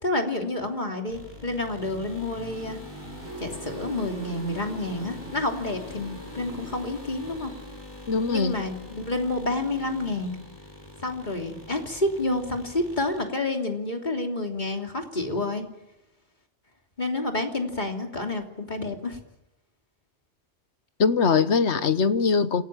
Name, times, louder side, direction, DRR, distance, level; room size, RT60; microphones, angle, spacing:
voice 1, 0.0-2.8 3.4-7.5 8.3-10.3 11.0-15.6 17.0-19.2, left 2 dB, 40° left, 3.3 m, -29 dB
sound 1, 1.1-13.3, equal, 30° right, 8.1 m, -42 dB
voice 2, 8.1-8.6 21.0-22.6, left 5 dB, 75° left, 1.4 m, -22 dB
28.5 x 18.0 x 9.0 m
omnidirectional pair, 1.2 m